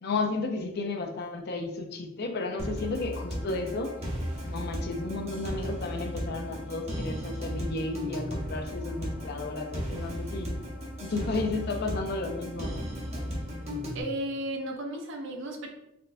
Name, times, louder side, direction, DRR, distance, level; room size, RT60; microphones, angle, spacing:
voice 1, 0.0-3.9 4.4-10.5 11.0-12.8, left 3 dB, 55° left, 4 dB, 0.5 m, -33 dB
sound 1, 2.6-14.0, equal, 35° right, 0.8 m, -35 dB
voice 2, 13.9-15.7, right 1 dB, 70° right, 2 dB, 0.6 m, -34 dB
4.2 x 2.2 x 2.6 m, 0.88 s
head